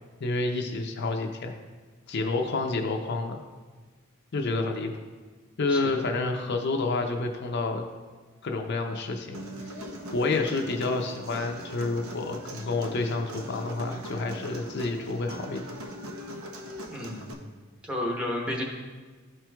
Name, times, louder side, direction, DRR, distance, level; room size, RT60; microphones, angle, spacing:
voice 1, 0.2-1.5 2.1-3.4 4.3-4.9 5.6-7.8 8.4-9.4 10.1-15.6, left 3 dB, 55° left, 3 dB, 0.5 m, -29 dB
Human voice, 9.3-17.3, equal, 85° right, 0.8 m, -40 dB
voice 2, 16.9-17.3 17.8-18.6, left 1 dB, 5° right, -1 dB, 0.9 m, -31 dB
12.5 x 4.4 x 2.3 m, 1.4 s
head